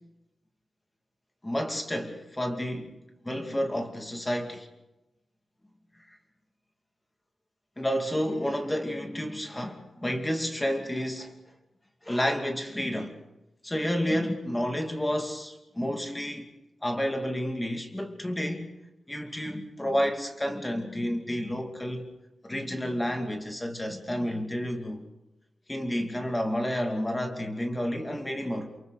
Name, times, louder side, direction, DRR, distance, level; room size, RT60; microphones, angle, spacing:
voice 1, 1.4-3.0 3.2-4.7 6.1-6.2 7.8-11.3 12.0-13.2 13.6-16.5 16.8-18.7 19.1-22.1 22.4-25.1 25.7-28.7, equal, 10° left, 2.6 m, -30 dB
29.0 x 27.0 x 4.2 m
wide cardioid pair, 175°, 0 cm